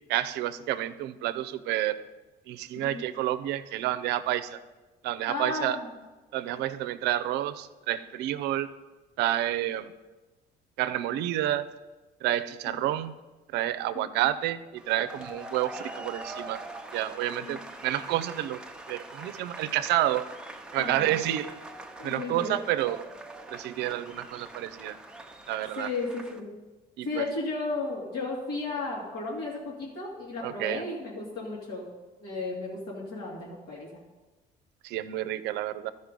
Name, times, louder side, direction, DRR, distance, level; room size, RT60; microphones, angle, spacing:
voice 1, 0.1-2.0 2.5-4.6 5.0-5.8 6.3-8.7 9.2-9.9 10.8-11.7 12.2-13.1 13.5-16.6 16.9-18.6 18.9-20.3 20.7-21.5 22.0-23.0 23.5-25.0 25.5-25.9 27.0-27.3 30.4-30.8 34.8-35.9, right 13 dB, 85° right, 13 dB, 0.5 m, -29 dB
voice 2, 2.7-3.1 5.3-6.0 12.7-12.8 13.9-14.1 17.4-17.6 20.7-21.2 22.0-22.6 25.8-26.6 27.0-31.9 32.2-33.9, left 3 dB, 75° left, -5 dB, 2.7 m, -34 dB
sound 1, 14.8-26.4, right 2 dB, 5° right, 0.8 m, -43 dB
12.5 x 5.4 x 5.3 m, 1.2 s
cardioid pair, 110°, 17 cm